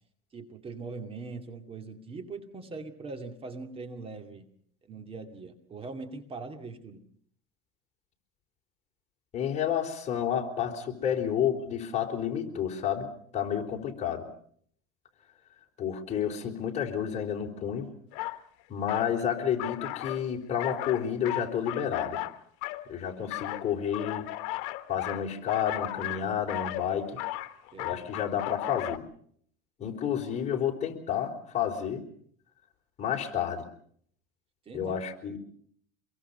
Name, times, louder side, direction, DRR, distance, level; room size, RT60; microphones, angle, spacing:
voice 1, 0.3-4.5 4.9-7.0 27.7-28.3 30.4-30.5 34.7-34.9 35.3-35.4, right 3 dB, 30° right, 7 dB, 2.3 m, -41 dB
voice 2, 9.3-13.1 13.3-14.3 15.8-17.9 18.7-22.2 22.9-24.3 24.9-27.2 27.8-29.0 29.8-32.0 33.0-33.7 34.7-35.4, left 8 dB, 35° left, 2 dB, 4.0 m, -30 dB
sound 1, 18.1-18.4 18.9-19.1 19.6-20.3 20.6-22.9 23.3-29.0, left 18 dB, 70° left, 1.3 m, -35 dB
26.5 x 22.5 x 5.5 m, 0.62 s
supercardioid pair, 120°, 19 cm